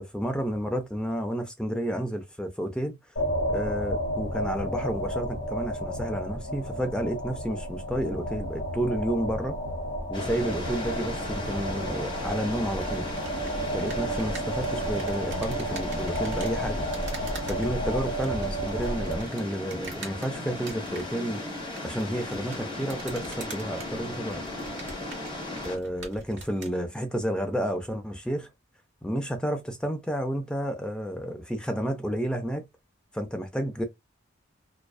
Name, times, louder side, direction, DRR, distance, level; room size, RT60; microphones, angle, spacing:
voice 1, 0.0-3.0 3.5-9.6 10.1-13.1 13.7-16.9 17.5-21.4 21.8-24.4 25.6-28.5 29.0-32.6 33.1-33.8, equal, 5° left, 0.4 m, -31 dB
sound 1, 3.2-19.2, right 1 dB, 55° left, 0.9 m, -32 dB
sound 2, 10.1-25.8, left 2 dB, 25° left, 1.1 m, -36 dB
sound 3, 12.8-26.8, right 3 dB, 60° right, 1.0 m, -45 dB
2.4 x 2.2 x 2.2 m
head